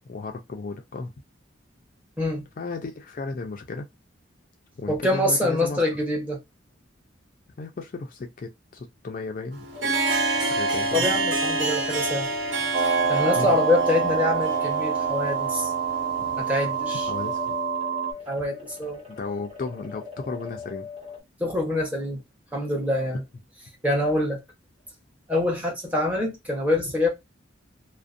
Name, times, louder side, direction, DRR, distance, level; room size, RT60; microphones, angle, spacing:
voice 1, 0.1-1.1 2.6-3.9 4.8-5.8 7.6-9.7 10.5-11.1 13.4-13.6 16.2-16.4 17.1-17.6 19.2-20.9, left 3 dB, 45° left, 0.4 m, -34 dB
voice 2, 4.9-6.4 10.9-12.3 12.8-15.7 16.3-17.1 18.3-19.0 21.4-22.2 22.5-23.2 23.8-24.4 25.3-27.1, left 1 dB, 10° right, 0.9 m, -25 dB
Harp, 9.5-17.3, right 3 dB, 80° right, 1.0 m, -28 dB
sound 1, 9.7-21.2, left 6 dB, 35° right, 1.1 m, -41 dB
sound 2, 12.7-18.1, right 6 dB, 60° right, 0.5 m, -26 dB
2.5 x 2.0 x 2.4 m
head